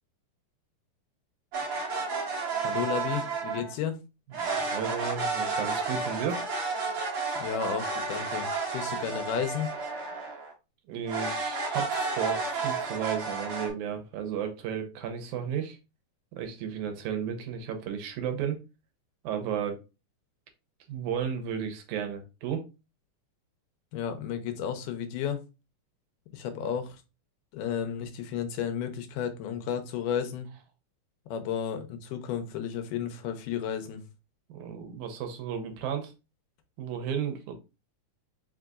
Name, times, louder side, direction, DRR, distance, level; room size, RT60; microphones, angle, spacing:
sound 1, 1.5-3.7 4.3-10.5 11.1-13.7, right 4 dB, 55° right, 1.4 m, -31 dB
voice 1, 2.6-4.0 7.4-9.7 23.9-25.4 26.3-27.0 27.5-30.5 31.3-34.0, left 8 dB, 85° left, 2.3 m, -33 dB
voice 2, 4.4-6.4 10.9-15.8 16.4-18.6 19.2-19.8 20.9-22.7 34.5-36.1 36.8-37.5, right 8 dB, 75° right, 2.1 m, -33 dB
5.1 x 3.9 x 2.3 m
omnidirectional pair, 3.6 m